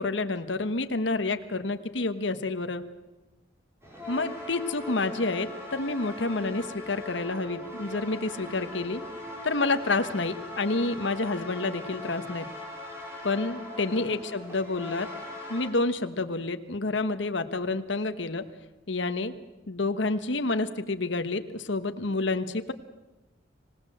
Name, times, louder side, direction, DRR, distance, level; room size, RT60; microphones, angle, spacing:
voice 1, 0.0-2.8 4.1-9.0 9.4-12.5 13.2-15.1 15.5-18.4 18.9-19.3 19.7-22.7, left 3 dB, 70° left, 9 dB, 1.3 m, -29 dB
sound 1, 3.8-15.7, left 2 dB, 15° right, 5.8 m, -40 dB
26.0 x 18.0 x 7.9 m, 1.1 s
head